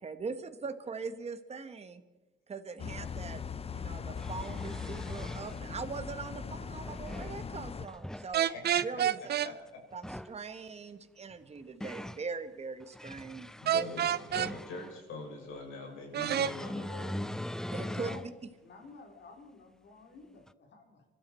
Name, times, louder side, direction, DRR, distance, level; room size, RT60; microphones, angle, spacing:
voice 1, 0.0-2.0 2.5-3.4 3.7-8.5 8.8-9.3 9.9-13.5 17.7-18.2, right 4 dB, 30° right, 9 dB, 1.3 m, -41 dB
sound 1, 2.8-7.9, left 6 dB, 30° left, 0.7 m, -40 dB
sound 2, 3.0-3.1 3.9-5.6 6.6-7.4 7.8-8.3 9.9-10.4 11.3-12.2 12.8-15.0 16.2-18.3 18.8-18.9 20.5-20.6, left 1 dB, 5° left, 0.4 m, -41 dB
sound 3, 8.3-9.5 13.7-14.5 16.1-16.5, right 10 dB, 55° right, 0.5 m, -28 dB
voice 2, 8.4-8.8 9.4-9.8 13.6-17.3, left 3 dB, 90° left, 0 dB, 6.0 m, -43 dB
voice 3, 17.8-18.2 18.6-21.1, left 3 dB, 60° left, 3 dB, 3.6 m, -51 dB
25.5 x 12.5 x 4.4 m, 1.1 s
cardioid pair, 90°, 20 cm